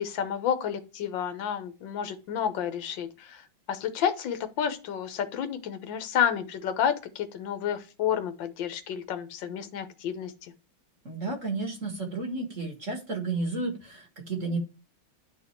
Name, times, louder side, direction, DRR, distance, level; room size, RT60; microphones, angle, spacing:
voice 1, 0.0-3.4 3.7-10.3, left 8 dB, 70° left, 1.7 m, -30 dB
voice 2, 11.0-14.6, right 3 dB, 40° right, 1.8 m, -32 dB
10.5 x 4.1 x 4.4 m
omnidirectional pair, 2.2 m